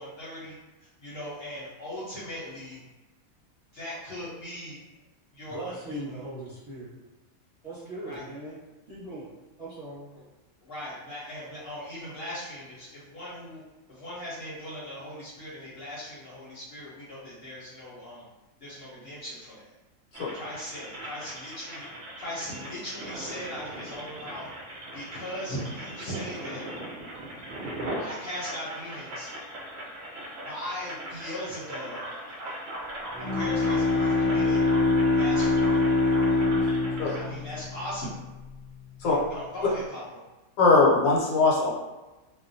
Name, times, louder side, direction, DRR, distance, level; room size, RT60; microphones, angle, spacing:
voice 1, 0.0-2.9 3.7-4.8 5.3-6.2 8.0-8.2 10.1-10.2 10.6-13.6 13.9-18.3 18.6-19.7 20.3-21.9 22.2-24.4 24.9-26.6 28.0-29.3 30.4-32.0 33.2-34.6 35.1-35.8 37.1-38.2 39.0-40.2, equal, 55° left, -8 dB, 0.8 m, -39 dB
voice 2, 5.5-6.9 7.6-8.5 8.9-9.3 9.6-10.1, right 1 dB, 30° right, -11 dB, 0.8 m, -39 dB
sound 1, 20.1-37.2, right 1 dB, 65° right, 0.6 m, -39 dB
Bowed string instrument, 33.1-38.2, left 3 dB, 5° left, 0.4 m, -24 dB
voice 3, 40.6-41.7, left 3 dB, 75° left, -4 dB, 1.0 m, -20 dB
2.3 x 2.1 x 2.5 m, 1.1 s
omnidirectional pair, 1.5 m